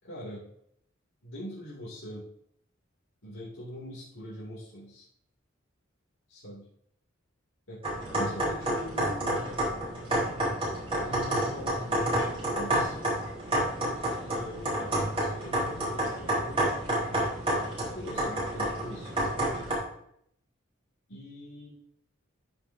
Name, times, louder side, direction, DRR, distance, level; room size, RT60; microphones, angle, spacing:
voice 1, 0.0-0.5 1.2-2.3 3.2-5.1 6.3-6.6 7.7-7.8 8.1-9.6 11.0-13.0 14.3-16.7 17.9-19.1 21.1-21.7, equal, 90° left, -8 dB, 2.6 m, -42 dB
sound 1, 7.8-19.7, right 1 dB, 30° right, 3.8 m, -29 dB
13.5 x 5.5 x 2.7 m, 0.70 s
head